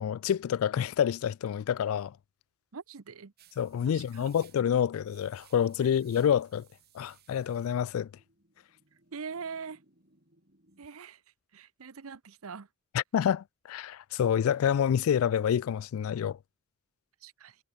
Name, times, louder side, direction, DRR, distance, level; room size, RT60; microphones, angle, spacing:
voice 1, 0.0-2.1 3.6-6.7 6.9-8.1 12.9-16.4, left 8 dB, 80° left, 0.3 m, -28 dB
voice 2, 2.7-3.3 3.8-4.3 9.1-9.8 10.8-11.2 11.5-12.7 17.2-17.6, right 5 dB, 90° right, 0.8 m, -42 dB
sound 1, 3.4-10.9, right 8 dB, 50° right, 7.5 m, -63 dB
head